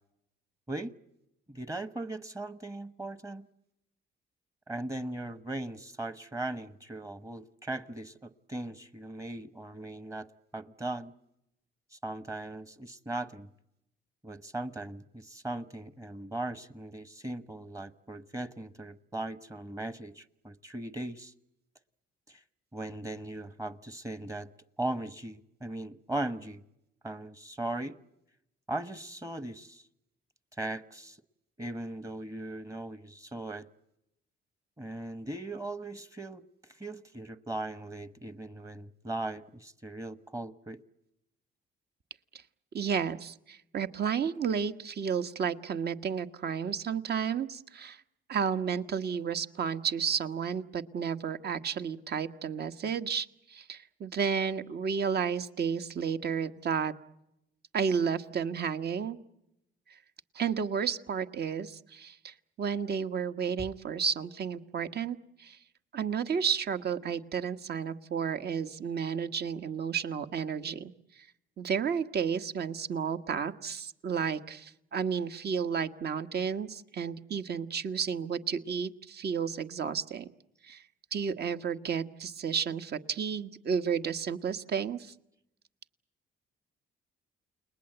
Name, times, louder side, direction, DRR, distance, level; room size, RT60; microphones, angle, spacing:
voice 1, 1.5-3.5 4.7-11.1 11.9-13.5 14.2-21.3 22.3-22.4 22.7-24.5 24.8-26.6 27.0-28.0 28.7-29.8 30.6-31.2 31.6-33.7 34.8-40.8, right 2 dB, 15° right, 1.1 m, -38 dB
voice 2, 42.7-48.0 48.3-56.9 57.7-59.2 60.3-65.6 65.9-70.9 71.6-80.3 80.6-80.8 81.1-85.1, right 7 dB, 55° right, 1.4 m, -32 dB
30.0 x 20.5 x 8.0 m
cardioid pair, 90°, 20 cm